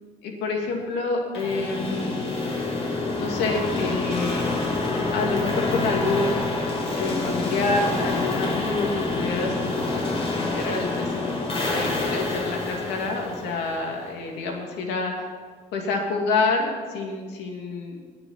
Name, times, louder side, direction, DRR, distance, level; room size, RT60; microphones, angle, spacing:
voice 1, 0.2-2.3 3.2-4.5 5.1-6.5 7.0-15.3 15.7-18.0, left 3 dB, 90° left, 1 dB, 2.8 m, -28 dB
sound 1, 1.3-14.2, left 3 dB, 35° left, 4.2 m, -27 dB
21.0 x 7.0 x 5.8 m, 1.5 s
cardioid pair, 110°, 17 cm